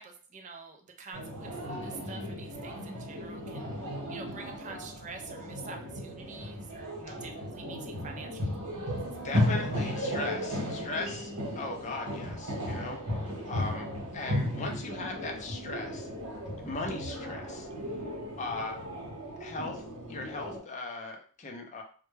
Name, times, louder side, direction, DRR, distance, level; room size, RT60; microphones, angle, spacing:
voice 1, 0.0-3.7 4.1-9.5, right 4 dB, 35° right, 3 dB, 0.4 m, -47 dB
sound 1, 1.1-20.6, left 1 dB, 90° right, 1.0 m, -35 dB
voice 2, 9.2-13.9 14.1-16.1 16.6-17.7 18.4-18.8 19.4-19.8 20.1-21.8, left 3 dB, 30° left, 2 dB, 0.4 m, -38 dB
2.1 x 2.1 x 3.1 m, 0.43 s
head